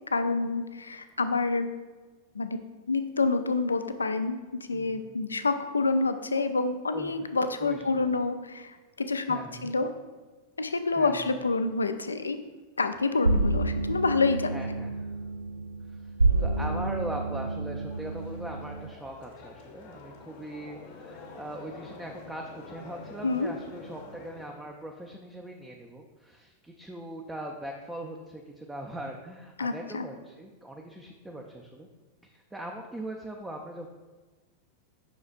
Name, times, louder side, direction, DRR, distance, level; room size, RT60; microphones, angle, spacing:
voice 1, 0.1-1.7 2.3-2.6 2.9-4.4 4.7-9.9 10.6-12.4 12.8-14.5 23.2-23.5 29.6-30.1, left 3 dB, 75° left, 9 dB, 0.4 m, -27 dB
voice 2, 4.7-5.2 6.9-7.3 7.6-8.1 9.2-9.7 10.9-11.4 14.5-15.1 15.9-31.9 32.2-33.9, right 1 dB, 10° right, 1 dB, 0.5 m, -41 dB
sound 1, 13.2-18.9, right 2 dB, 80° right, 0.3 m, -29 dB
sound 2, 17.9-24.5, left 3 dB, 50° left, 0.9 m, -47 dB
7.1 x 5.8 x 2.5 m, 1.3 s
figure-of-eight pair, 90°, 0 cm